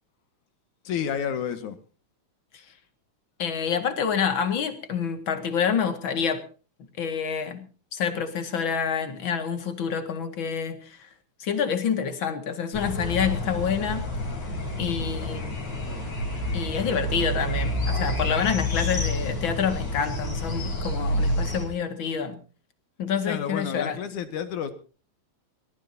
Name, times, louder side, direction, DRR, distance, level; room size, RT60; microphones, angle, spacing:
voice 1, 0.8-1.8 23.2-24.7, left 8 dB, 85° left, 9 dB, 3.2 m, -30 dB
voice 2, 3.4-6.4 7.0-11.1 11.4-14.1 14.8-15.6 16.5-22.4 23.0-24.0, left 7 dB, 45° left, 8 dB, 2.5 m, -27 dB
sound 1, 12.7-21.7, left 1 dB, 60° left, 6.2 m, -29 dB
24.0 x 18.5 x 2.8 m, 0.37 s
omnidirectional pair, 3.4 m